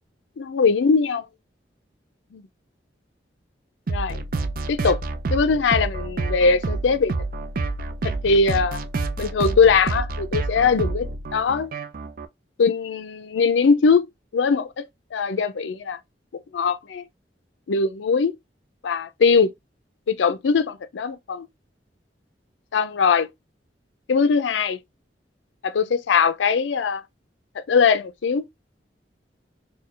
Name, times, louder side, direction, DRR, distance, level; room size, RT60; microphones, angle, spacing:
voice 1, 0.4-1.3 2.3-2.4 3.9-4.2 4.7-5.0 5.3-7.1 8.0-8.8 9.2-11.7 12.6-14.1 14.3-16.0 16.5-17.0 17.7-18.4 18.8-19.5 20.1-21.5 22.7-23.3 24.1-24.8 25.6-27.0 27.6-28.4, left 5 dB, 90° left, 0.4 m, -21 dB
sound 1, 3.9-12.3, right 3 dB, 50° right, 0.5 m, -28 dB
4.3 x 2.2 x 3.1 m
head